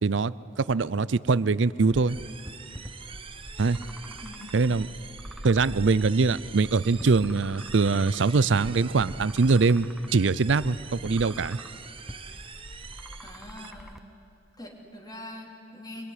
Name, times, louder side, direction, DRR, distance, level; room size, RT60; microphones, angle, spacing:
voice 1, 0.0-2.2 3.6-3.8 4.5-4.9 5.4-11.6, right 4 dB, 80° right, 18 dB, 0.6 m, -23 dB
sound 1, 1.9-14.0, equal, ahead, 0.8 m, -44 dB
sound 2, 2.1-13.7, right 6 dB, 30° right, 1.0 m, -45 dB
voice 2, 4.2-4.6 13.2-14.0 14.6-16.1, left 1 dB, 20° left, 1 dB, 3.6 m, -43 dB
24.5 x 22.5 x 9.9 m, 2.7 s
head